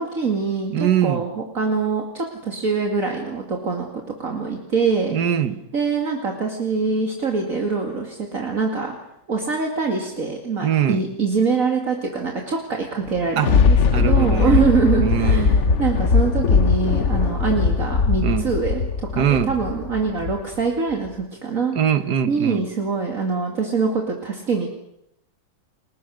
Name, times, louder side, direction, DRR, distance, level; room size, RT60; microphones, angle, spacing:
voice 1, 0.0-3.9 4.2-5.2 5.7-9.0 9.3-18.8 19.1-21.7 22.3-24.7, right 4 dB, 50° right, 2 dB, 2.8 m, -24 dB
voice 2, 0.7-1.2 5.1-5.6 10.6-11.0 13.4-13.5 13.9-14.6 15.0-15.8 18.2-18.5 19.2-19.5 21.8-22.6, right 9 dB, 70° right, 11 dB, 1.9 m, -22 dB
Thunder, 13.0-20.6 21.1-21.2, left 5 dB, 45° left, 1.3 m, -20 dB
29.5 x 20.5 x 6.4 m, 0.78 s
omnidirectional pair, 1.8 m